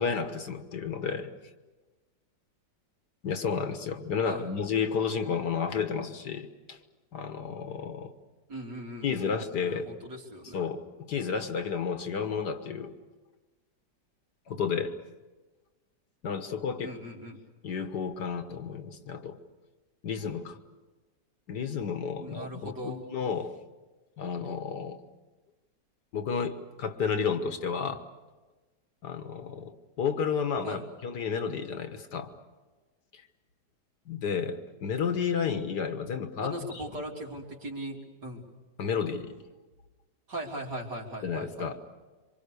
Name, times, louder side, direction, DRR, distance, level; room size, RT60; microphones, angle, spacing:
voice 1, 0.0-1.3 3.2-6.8 7.1-8.1 9.0-9.9 10.5-12.9 14.5-14.9 16.2-16.9 17.6-19.4 20.0-20.6 21.5-23.5 24.2-25.0 26.1-28.0 29.0-32.3 33.1-33.2 34.1-36.8 38.8-39.3 41.2-41.8, left 6 dB, 70° left, 8 dB, 1.9 m, -31 dB
voice 2, 8.5-10.6 16.8-17.4 22.2-23.0 30.6-30.8 36.4-38.0 38.2-38.4 40.3-41.7, right 1 dB, 70° right, -1 dB, 4.2 m, -39 dB
27.5 x 25.5 x 6.8 m, 1.2 s
omnidirectional pair, 1.9 m